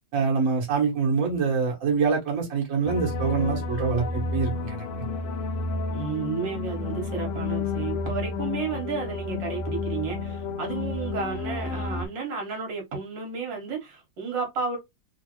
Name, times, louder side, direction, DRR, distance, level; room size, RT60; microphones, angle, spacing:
voice 1, 0.1-4.8, right 5 dB, 45° right, 1.6 m, -25 dB
sound 1, 2.8-12.1, left 3 dB, 75° left, 0.7 m, -31 dB
voice 2, 5.9-14.8, right 5 dB, 70° right, 1.8 m, -32 dB
3.7 x 2.6 x 2.9 m
omnidirectional pair, 2.0 m